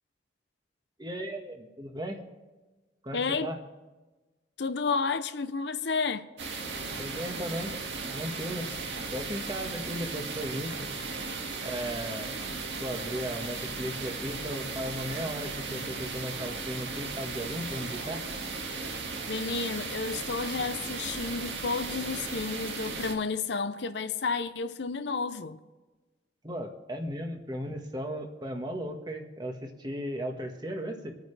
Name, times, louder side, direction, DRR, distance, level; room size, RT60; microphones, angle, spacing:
voice 1, 1.0-2.2 3.0-3.6 7.0-7.8 8.1-8.7 9.1-10.9 11.6-12.4 12.8-18.2 26.4-31.1, equal, 25° right, 1.5 m, -36 dB
voice 2, 3.1-3.5 4.6-6.2 19.3-25.6, left 4 dB, 70° left, 0.7 m, -31 dB
sound 1, 6.4-23.1, right 4 dB, 80° right, 1.9 m, -36 dB
27.0 x 9.2 x 3.3 m
head